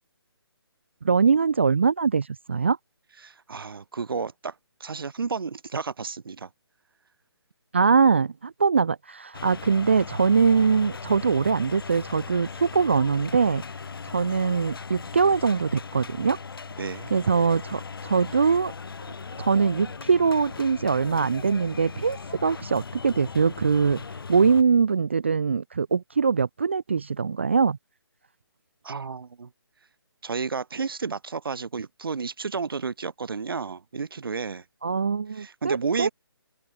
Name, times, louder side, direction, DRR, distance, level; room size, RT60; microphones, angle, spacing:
voice 1, 1.0-2.8 7.7-13.6 14.1-16.4 17.1-18.7 19.4-24.0 24.3-27.8 34.8-36.1, right 5 dB, 30° right, 0.4 m, -22 dB
voice 2, 3.2-4.5 4.8-6.5 16.8-17.1 28.8-29.5 30.2-34.6 35.3-36.1, right 5 dB, 60° right, 4.3 m, -32 dB
sound 1, 9.3-24.6, left 5 dB, 60° left, 5.7 m, -38 dB
hypercardioid pair, 170°, 14 cm